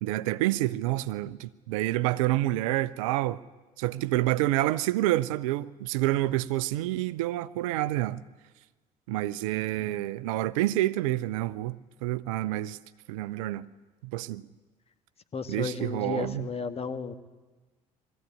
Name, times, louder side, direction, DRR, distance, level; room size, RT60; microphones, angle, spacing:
voice 1, 0.0-3.4 3.8-8.2 9.1-11.8 12.0-12.8 13.1-13.6 14.0-14.4 15.5-16.5, right 16 dB, 65° right, 0.6 m, -28 dB
voice 2, 15.3-17.1, left 5 dB, 30° left, 1.6 m, -34 dB
22.0 x 14.5 x 8.7 m
figure-of-eight pair, 55°, 19 cm